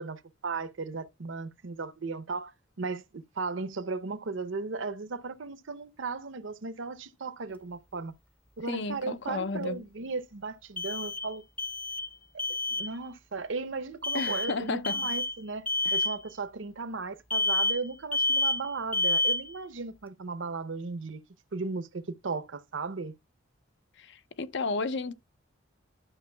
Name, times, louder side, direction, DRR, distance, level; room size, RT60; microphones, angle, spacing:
voice 1, 0.0-2.5 2.8-8.2 8.6-11.4 12.7-15.6 15.9-21.2 21.5-23.1, right 4 dB, 65° right, 0.7 m, -36 dB
sound 1, 7.5-7.6 10.8-11.3 11.6-12.1 12.4-12.9 14.0-14.5 14.8-15.3 15.7-16.2 17.3-17.9 18.1-18.7 18.9-19.5, left 2 dB, 5° left, 0.6 m, -28 dB
voice 2, 8.7-9.8 14.1-15.0 15.8-16.0 24.0-25.1, left 4 dB, 60° left, 0.6 m, -33 dB
12.0 x 6.1 x 2.2 m
head